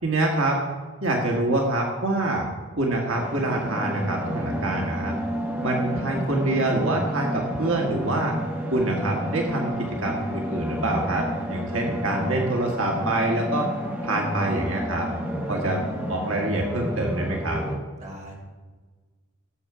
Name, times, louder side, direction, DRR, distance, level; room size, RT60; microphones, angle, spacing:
voice 1, 0.0-0.6 1.0-2.5 2.8-5.2 5.6-8.4 8.7-9.7 10.0-13.7 14.0-15.1 15.5-15.8 16.1-17.6, right 2 dB, 75° right, 0 dB, 1.8 m, -25 dB
sound 1, 3.1-17.8, equal, 10° right, 1.4 m, -31 dB
voice 2, 15.5-16.0 18.0-18.3, equal, 35° right, -2 dB, 2.8 m, -41 dB
17.5 x 7.2 x 4.9 m, 1.3 s
head